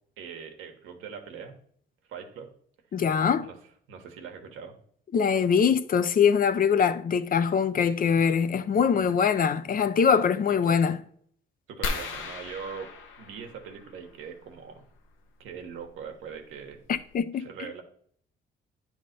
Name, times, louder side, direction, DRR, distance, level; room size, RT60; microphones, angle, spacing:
voice 1, 0.2-1.5 2.1-2.5 3.4-3.6 3.9-4.7 8.9-9.2 10.5-10.9 11.7-12.9 13.2-14.8 15.4-16.8 17.3-17.8, right 6 dB, 85° right, 1.4 m, -41 dB
voice 2, 2.9-3.5 5.1-11.0 17.1-17.5, left 6 dB, 45° left, 0.6 m, -23 dB
sound 1, 11.8-14.2 15.8-16.0 16.6-16.7 16.9-17.2, left 3 dB, 80° left, 1.1 m, -36 dB
9.9 x 3.6 x 5.1 m
cardioid pair, 90°, 20 cm